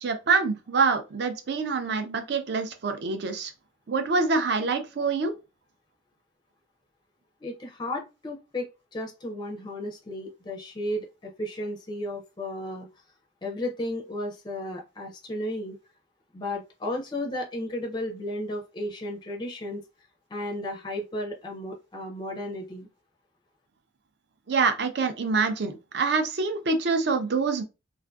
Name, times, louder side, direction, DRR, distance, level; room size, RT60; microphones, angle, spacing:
voice 1, 0.0-3.5 3.9-5.3 24.5-27.6, right 4 dB, 55° right, 0.5 m, -26 dB
voice 2, 7.4-8.7 8.9-12.9 13.4-15.8 16.3-19.8 20.3-22.9, left 1 dB, 25° left, 0.4 m, -34 dB
2.5 x 2.4 x 2.3 m
head